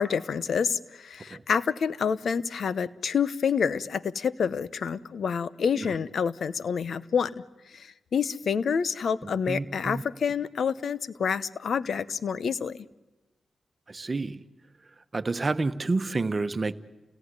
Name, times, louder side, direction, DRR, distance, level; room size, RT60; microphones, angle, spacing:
voice 1, 0.0-12.8, left 6 dB, 75° left, 0.9 m, -28 dB
voice 2, 9.2-10.0 13.9-14.4 15.1-16.7, right 3 dB, 40° right, 1.2 m, -29 dB
29.0 x 17.5 x 9.8 m
cardioid pair, 55°, 0 cm